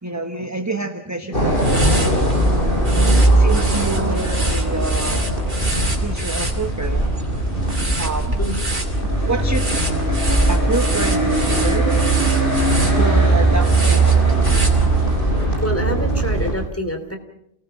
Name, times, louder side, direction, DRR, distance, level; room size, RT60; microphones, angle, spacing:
voice 1, 0.0-2.3 3.4-5.3 5.9-7.1 8.0-8.4 9.3-9.7 10.4-11.9 12.8-14.5, right 3 dB, 15° right, 6 dB, 1.2 m, -28 dB
sound 1, 1.3-16.5, right 2 dB, 55° left, 8.2 m, -19 dB
sound 2, 1.5-15.2, right 1 dB, 50° right, 4.0 m, -26 dB
voice 2, 15.6-17.2, equal, 15° left, 5 dB, 3.1 m, -26 dB
29.0 x 19.0 x 5.8 m, 0.78 s
omnidirectional pair, 1.1 m